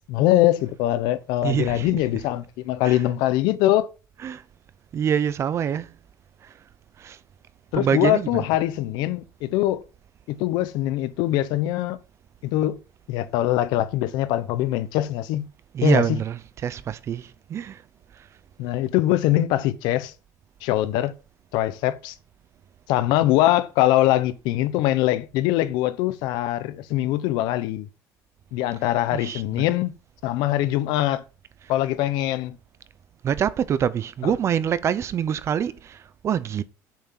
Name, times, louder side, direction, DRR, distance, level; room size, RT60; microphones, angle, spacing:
voice 1, 0.1-3.9 7.7-9.8 10.3-12.0 12.4-12.8 13.1-15.5 15.8-16.2 18.6-20.1 20.6-21.1 21.5-22.1 22.9-27.9 28.5-29.9 30.2-31.2 31.7-32.6 34.2-34.3, left 14 dB, 80° left, 1.0 m, -22 dB
voice 2, 1.4-2.0 2.8-3.0 4.2-4.4 4.9-5.9 7.0-7.2 7.7-8.4 15.7-17.8 29.1-29.4 33.2-36.6, right 8 dB, 40° right, 0.7 m, -25 dB
7.3 x 6.0 x 7.5 m
cardioid pair, 135°, 7 cm